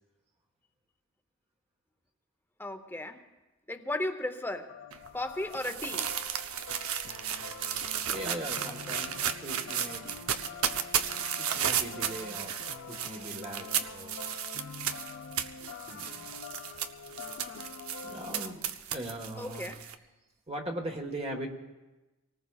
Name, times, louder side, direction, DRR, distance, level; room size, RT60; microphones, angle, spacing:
voice 1, 2.6-3.2 3.7-4.7 5.1-6.1 19.4-19.9, left 1 dB, 10° left, 7 dB, 0.8 m, -35 dB
sound 1, 4.7-18.5, left 5 dB, 65° left, 0.6 m, -46 dB
sound 2, 4.9-19.9, right 9 dB, 85° right, 0.7 m, -34 dB
voice 2, 8.1-10.1 11.4-12.6 12.9-14.1 15.9-16.3 17.6-17.7 18.0-19.7 20.5-21.5, right 1 dB, 30° right, 2 dB, 1.2 m, -40 dB
26.0 x 19.0 x 2.4 m, 1.1 s
head